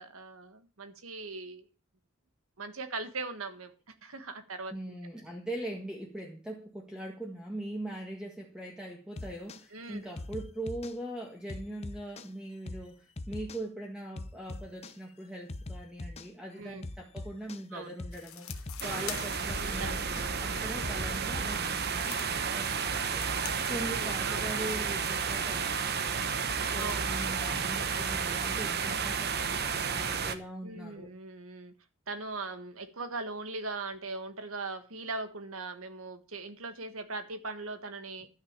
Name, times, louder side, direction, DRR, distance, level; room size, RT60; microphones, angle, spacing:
voice 1, 0.0-1.7 2.6-4.7 9.7-10.0 16.6-16.9 17.7-18.0 19.6-20.4 23.7-24.6 26.8-27.3 30.6-31.7 32.1-38.3, right 3 dB, 80° right, 10 dB, 1.5 m, -40 dB
voice 2, 4.7-26.3 26.7-31.1, right 1 dB, 5° right, -1 dB, 1.8 m, -41 dB
sound 1, 9.2-9.6 10.2-11.0 11.5-12.3 12.7-12.9 13.2-13.6 14.2-15.0 15.5-16.3 16.8-17.6 18.0-18.2 18.5-19.0 19.5-21.7, left 2 dB, 30° left, 0.7 m, -41 dB
Pine tree branch snap breaking, 18.1-20.9 21.5-27.4, left 10 dB, 85° left, 1.4 m, -48 dB
sound 2, 18.8-30.3, right 6 dB, 50° right, 0.9 m, -32 dB
12.0 x 6.3 x 7.4 m, 0.35 s
head